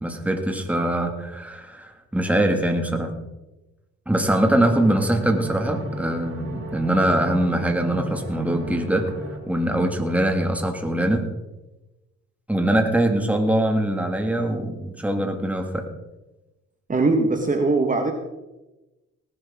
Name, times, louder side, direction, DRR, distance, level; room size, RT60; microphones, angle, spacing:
voice 1, 0.0-3.1 4.1-9.1 9.5-11.3 12.5-15.9, right 1 dB, 5° right, 4 dB, 2.2 m, -22 dB
sound 1, 4.3-9.4, right 1 dB, 45° right, 4.4 m, -35 dB
voice 2, 16.9-18.1, right 3 dB, 25° right, 3 dB, 1.5 m, -20 dB
18.5 x 11.5 x 3.7 m, 1.0 s
cardioid pair, 90°, 30 cm